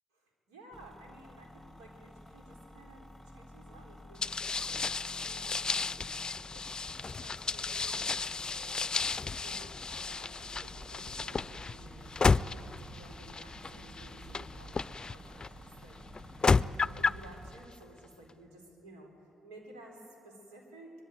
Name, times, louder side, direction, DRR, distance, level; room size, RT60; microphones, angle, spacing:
voice 1, 0.1-9.0 9.4-19.1 19.4-21.0, right 1 dB, 85° right, 2 dB, 3.9 m, -54 dB
sound 1, 0.7-17.7, left 1 dB, 5° left, 1.7 m, -53 dB
sound 2, 4.2-15.5 16.1-17.3, left 4 dB, 35° left, 0.5 m, -32 dB
sound 3, 10.4-17.5, right 2 dB, 50° right, 1.5 m, -52 dB
24.0 x 20.5 x 9.2 m, 2.9 s
hypercardioid pair, 40°, 2 cm